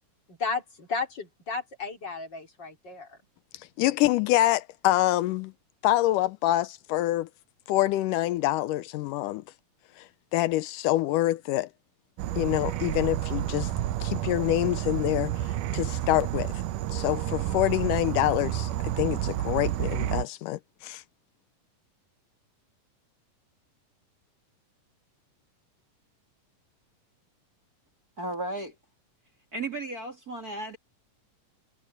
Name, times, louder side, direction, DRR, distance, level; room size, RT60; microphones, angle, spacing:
voice 1, 0.3-3.2, left 4 dB, 35° left, 3.7 m, -33 dB
voice 2, 3.5-5.5 5.8-7.3 7.7-9.4 10.0-11.7 12.4-13.7 14.0-16.5 16.9-18.7 19.0-21.0, left 15 dB, 85° left, 2.2 m, -26 dB
Insect / Frog, 12.2-20.3, right 13 dB, 80° right, 2.3 m, -30 dB
voice 3, 28.2-28.7 29.5-30.8, right 2 dB, 30° right, 2.3 m, -34 dB
omnidirectional pair, 3.7 m